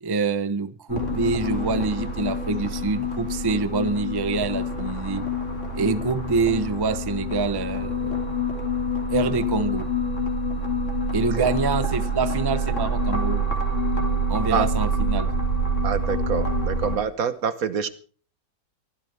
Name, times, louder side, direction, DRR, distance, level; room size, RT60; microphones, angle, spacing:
voice 1, 0.0-5.3 5.7-8.2 9.1-9.9 11.1-13.4 14.3-15.3, right 4 dB, 20° right, 13 dB, 0.6 m, -26 dB
sound 1, 0.9-17.0, equal, 50° left, 3.4 m, -26 dB
voice 2, 15.8-17.9, right 7 dB, 65° right, 13 dB, 1.5 m, -26 dB
24.0 x 15.0 x 3.4 m, 0.42 s
omnidirectional pair, 1.6 m